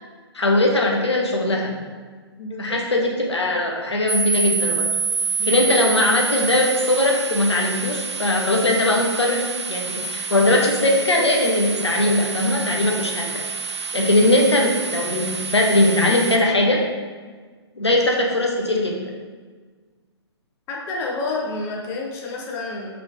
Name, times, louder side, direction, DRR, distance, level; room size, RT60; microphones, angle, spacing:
voice 1, 0.3-1.7 2.6-4.9 5.4-16.8 17.8-19.1, left 1 dB, 75° left, 0 dB, 0.9 m, -20 dB
voice 2, 2.4-2.7 5.4-5.5 20.7-22.9, left 3 dB, 15° left, -1 dB, 0.5 m, -29 dB
sound 1, 4.1-16.4, right 4 dB, 85° right, 0.4 m, -28 dB
3.5 x 3.4 x 3.9 m, 1.5 s
figure-of-eight pair, 125°, 14 cm